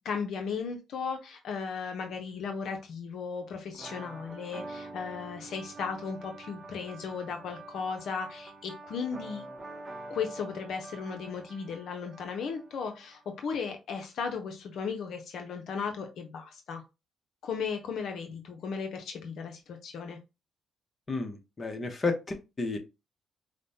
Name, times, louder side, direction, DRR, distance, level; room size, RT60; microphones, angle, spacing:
voice 1, 0.0-9.4 10.1-16.8 17.4-20.2, left 5 dB, 70° left, 4 dB, 0.6 m, -36 dB
sound 1, 3.7-13.3, right 2 dB, 20° right, 0.8 m, -46 dB
voice 2, 21.1-22.8, left 3 dB, 30° left, 4 dB, 0.9 m, -32 dB
5.1 x 2.1 x 2.7 m, 0.26 s
cardioid pair, 90°, 0 cm